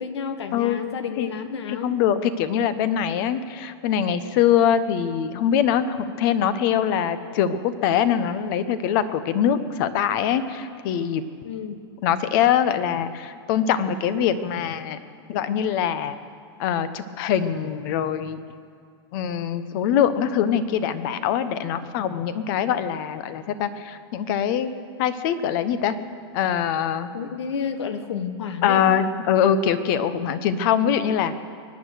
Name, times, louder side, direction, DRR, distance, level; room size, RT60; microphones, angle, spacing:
voice 1, 0.0-2.0 11.4-11.8 27.1-29.0, left 6 dB, 85° left, 10 dB, 1.3 m, -31 dB
voice 2, 0.5-0.8 1.2-1.3 1.7-11.2 12.0-15.0 15.3-16.2 16.6-18.4 19.1-24.7 25.0-26.0 26.3-27.1 28.6-31.3, left 9 dB, 50° left, 13 dB, 1.0 m, -23 dB
23.5 x 9.5 x 6.5 m, 2.2 s
supercardioid pair, 140°, 14 cm